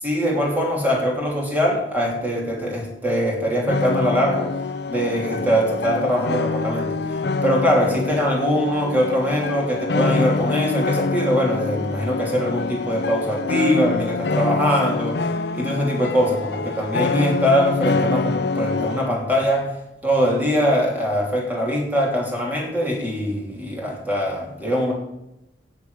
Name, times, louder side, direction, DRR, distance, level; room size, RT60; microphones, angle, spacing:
voice 1, 0.0-4.5 4.9-7.0 7.4-19.7 20.0-24.9, equal, 10° right, -1 dB, 3.1 m, -22 dB
sound 1, 3.7-19.1, left 3 dB, 65° left, 0.6 m, -25 dB
8.4 x 8.3 x 8.3 m, 0.88 s
head